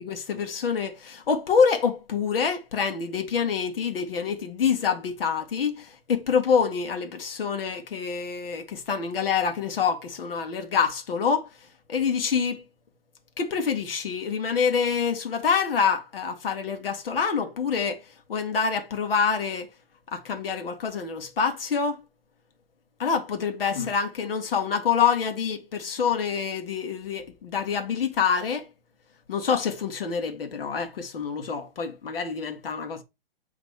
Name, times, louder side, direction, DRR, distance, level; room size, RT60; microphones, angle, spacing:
voice 1, 0.0-11.5 11.9-12.6 13.4-18.0 18.3-19.7 20.1-22.0 23.0-28.7 29.3-33.0, left 6 dB, 70° left, 1.7 m, -26 dB
9.3 x 3.5 x 3.4 m
hypercardioid pair, 130°, 29 cm